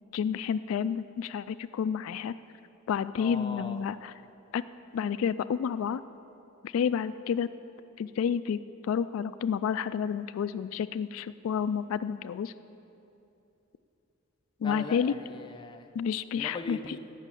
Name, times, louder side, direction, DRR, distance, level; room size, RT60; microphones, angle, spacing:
voice 1, 0.1-2.3 2.9-4.1 4.5-4.6 4.9-6.0 6.6-7.5 8.0-12.5 14.6-15.1 15.9-16.8, left 7 dB, 80° left, 14 dB, 0.3 m, -30 dB
voice 2, 3.2-3.8 14.6-15.9 16.3-17.0, left 2 dB, 25° left, 5 dB, 0.6 m, -40 dB
14.5 x 6.1 x 8.3 m, 2.9 s
head